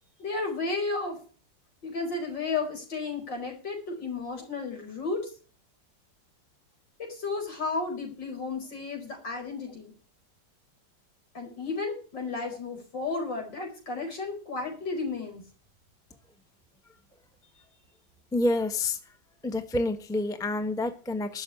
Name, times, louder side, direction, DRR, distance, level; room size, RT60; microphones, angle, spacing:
voice 1, 0.2-1.2 1.8-5.2 7.0-9.9 11.3-15.4, left 3 dB, 70° left, 3 dB, 5.4 m, -33 dB
voice 2, 18.3-19.0 19.4-21.4, left 2 dB, ahead, 8 dB, 1.0 m, -28 dB
12.0 x 6.7 x 9.8 m, 0.38 s
omnidirectional pair, 2.0 m